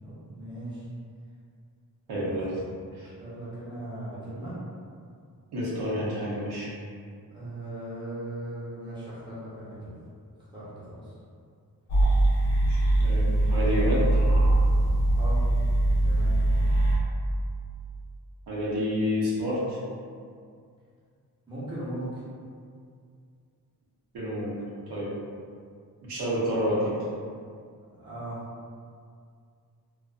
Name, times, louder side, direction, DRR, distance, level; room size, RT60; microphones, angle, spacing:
voice 1, 0.0-0.9 2.1-2.5 3.2-4.6 7.3-10.0 10.5-11.1 15.2-15.4 15.9-16.4 21.5-22.2 28.0-28.4, right 1 dB, 10° right, -10 dB, 0.8 m, -38 dB
voice 2, 2.1-2.5 2.9-3.1 5.5-6.7 12.7-14.0 18.5-19.8 24.1-24.5 24.9-25.1 26.1-27.0, equal, 90° right, -8 dB, 0.9 m, -29 dB
sound 1, 11.9-17.0, right 1 dB, 45° left, 0.6 m, -22 dB
2.5 x 2.3 x 2.3 m, 2.2 s
wide cardioid pair, 130°, 37 cm